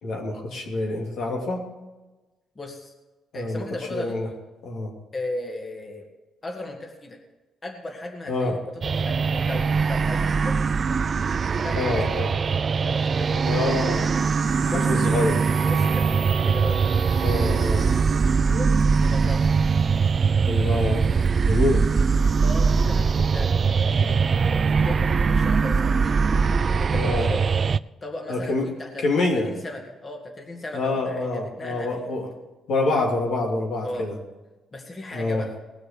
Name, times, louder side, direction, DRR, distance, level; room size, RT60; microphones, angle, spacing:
voice 1, 0.0-1.6 3.3-4.3 4.6-4.9 8.3-8.6 11.7-12.3 13.4-14.1 14.6-15.4 17.2-18.0 20.4-21.1 21.4-21.9 26.9-27.3 28.3-28.7 29.0-29.5 30.7-32.3 32.7-34.2 35.1-35.4, left 2 dB, 70° left, 0 dB, 2.7 m, -26 dB
voice 2, 2.6-2.9 3.3-4.2 5.1-6.0 6.4-7.2 7.6-10.6 11.6-12.3 12.8-14.0 14.6-15.2 15.7-16.8 18.1-19.5 21.9-22.0 22.4-23.5 23.9-26.3 26.7-27.4 28.0-29.1 29.3-32.2 33.8-34.1 34.7-35.5, left 2 dB, 30° left, 2 dB, 2.1 m, -36 dB
sound 1, 8.8-27.8, right 5 dB, 40° right, 0.3 m, -22 dB
Wind instrument woodwind instrument, 14.0-18.4, right 6 dB, 85° right, 1.2 m, -36 dB
19.0 x 6.3 x 6.8 m, 1.2 s
cardioid pair, 90°, 0 cm